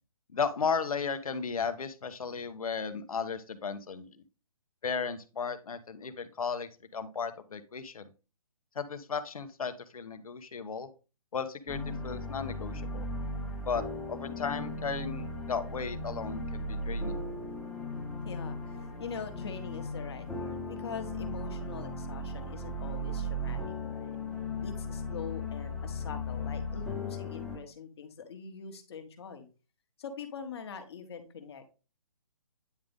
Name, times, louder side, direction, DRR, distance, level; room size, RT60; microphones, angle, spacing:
voice 1, 0.3-4.2 4.8-8.1 8.7-10.9 11.3-13.1 13.6-17.2, left 5 dB, 75° left, 9 dB, 1.1 m, -35 dB
sound 1, 11.7-27.6, left 1 dB, 5° left, 1.0 m, -37 dB
voice 2, 18.2-24.2 24.6-29.5 30.0-31.7, left 6 dB, 45° left, 6 dB, 1.4 m, -43 dB
9.5 x 3.8 x 3.5 m, 0.33 s
hypercardioid pair, 165°, 19 cm